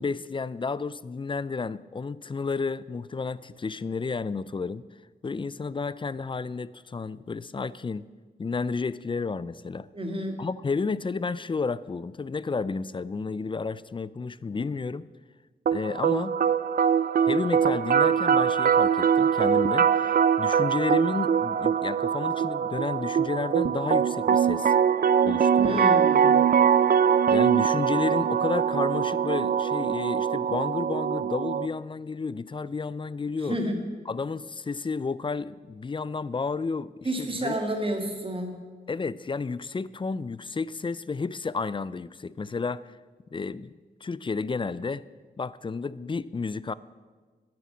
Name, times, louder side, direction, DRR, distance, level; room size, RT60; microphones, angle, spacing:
voice 1, 0.0-4.8 5.2-8.1 8.4-9.9 10.4-15.1 15.7-16.4 17.2-24.7 25.2-25.9 27.3-33.6 34.1-36.9 37.2-37.6 38.9-42.9 43.3-43.7 44.0-45.0 45.4-46.7, left 4 dB, 30° left, 18 dB, 0.3 m, -31 dB
voice 2, 9.9-10.4 25.5-26.3 33.4-33.9 37.0-38.6, right 1 dB, 30° right, 3 dB, 1.7 m, -30 dB
sound 1, 15.7-31.7, right 7 dB, 55° right, 0.4 m, -23 dB
10.5 x 7.5 x 8.4 m, 1.4 s
wide cardioid pair, 105°, 18 cm